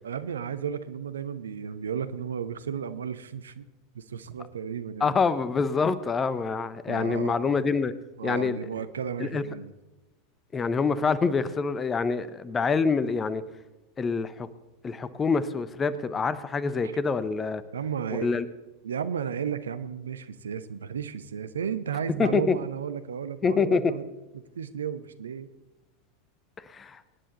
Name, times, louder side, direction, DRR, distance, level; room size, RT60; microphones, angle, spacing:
voice 1, 0.0-3.7 3.9-5.2 6.9-7.6 8.2-9.7 16.8-16.9 17.7-18.4 18.8-24.1 24.3-25.5, right 7 dB, 70° right, 0.8 m, -34 dB
voice 2, 5.0-7.9 8.2-8.6 9.2-9.4 10.5-13.4 14.0-14.5 14.8-17.6 18.2-18.5 22.2-22.5 23.4-23.8 26.7-27.0, left 5 dB, 20° left, 0.9 m, -26 dB
24.5 x 10.0 x 4.0 m
figure-of-eight pair, 90°, 0 cm